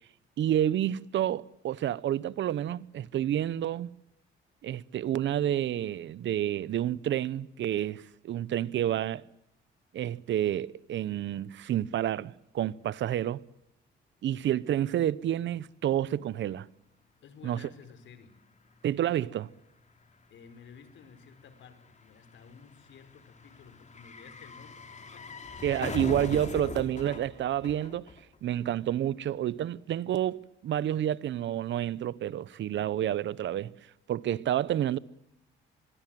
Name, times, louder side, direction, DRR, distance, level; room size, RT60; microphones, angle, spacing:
voice 1, 0.4-3.9 4.6-9.2 9.9-13.4 14.2-16.7 17.4-17.6 18.8-19.5 25.6-28.0 28.4-33.7 34.1-35.0, right 11 dB, 70° right, 0.9 m, -29 dB
voice 2, 17.2-18.3 20.3-25.4, left 6 dB, 70° left, 4.4 m, -53 dB
sound 1, 17.9-18.0 18.2-28.6 28.8-28.9, left 4 dB, 35° left, 3.4 m, -42 dB
26.5 x 22.0 x 7.7 m
cardioid pair, 90°, 20 cm